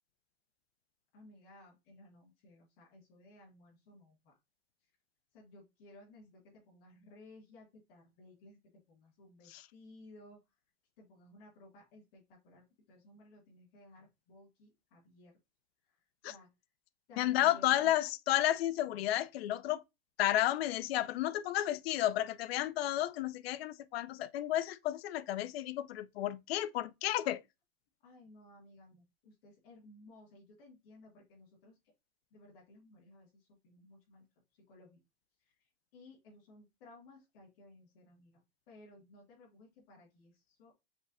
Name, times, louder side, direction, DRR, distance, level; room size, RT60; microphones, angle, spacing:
voice 1, 1.1-4.4 5.3-10.4 11.0-15.4 15.9-16.0 16.2-16.5 17.1-18.1 28.0-31.8 32.3-34.2 34.7-35.0 35.4-38.4 38.7-40.7, left 1 dB, 65° left, 2.3 m, -58 dB
voice 2, 17.2-19.8 20.2-27.4, left 13 dB, 85° left, 0.5 m, -32 dB
5.2 x 2.2 x 4.0 m
supercardioid pair, 155°, 30 cm